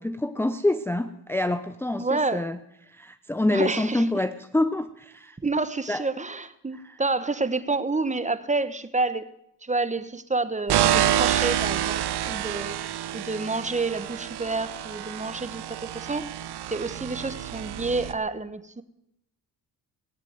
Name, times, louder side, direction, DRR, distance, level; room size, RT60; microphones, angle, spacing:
voice 1, 0.0-2.6 2.9-5.4 5.9-6.0 6.8-7.0, left 1 dB, 5° left, 10 dB, 0.7 m, -26 dB
voice 2, 2.0-2.5 3.5-4.1 5.4-9.3 9.6-12.8 13.1-16.4 16.7-18.8, right 3 dB, 15° right, 13 dB, 1.1 m, -29 dB
sound 1, 10.7-18.1, right 11 dB, 65° right, 1.1 m, -28 dB
19.0 x 9.0 x 7.9 m, 0.81 s
cardioid pair, 75°, 42 cm